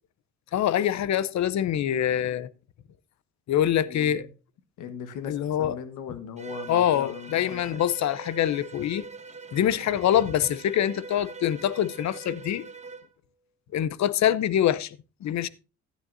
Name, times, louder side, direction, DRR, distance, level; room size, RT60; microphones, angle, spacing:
voice 1, 0.5-2.5 3.5-4.3 5.3-5.8 6.7-9.0 9.5-12.7 13.7-15.5, left 10 dB, 65° left, 0.8 m, -25 dB
voice 2, 3.8-4.3 4.8-7.8, left 7 dB, 80° left, 1.4 m, -39 dB
Bowed string instrument, 6.4-13.1, right 4 dB, 20° right, 1.2 m, -43 dB
15.0 x 9.4 x 2.6 m
cardioid pair, 90°, 30 cm